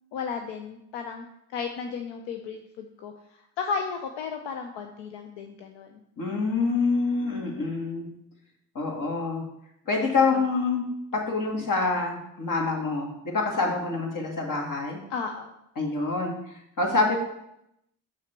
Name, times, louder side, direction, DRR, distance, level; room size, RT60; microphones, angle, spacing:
voice 1, 0.1-6.0 10.3-10.4 15.1-15.5, left 5 dB, 75° left, 5 dB, 0.8 m, -34 dB
voice 2, 6.2-8.1 8.8-9.4 9.9-10.8 11.3-15.0 15.8-16.3 16.8-17.2, left 3 dB, 45° left, 1 dB, 2.2 m, -26 dB
6.4 x 5.9 x 4.5 m, 0.81 s
hypercardioid pair, 60°, 43 cm